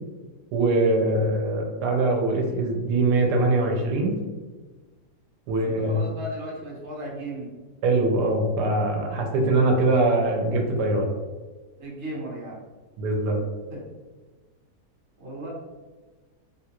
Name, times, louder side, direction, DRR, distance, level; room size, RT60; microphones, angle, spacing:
voice 1, 0.5-4.2 5.5-6.0 7.8-11.1 13.0-13.4, right 2 dB, 80° right, 2 dB, 1.3 m, -22 dB
voice 2, 5.6-7.5 11.8-12.6 13.7-13.8 15.2-15.5, right 1 dB, 45° right, -5 dB, 1.2 m, -35 dB
3.6 x 2.4 x 2.9 m, 1.3 s
omnidirectional pair, 1.8 m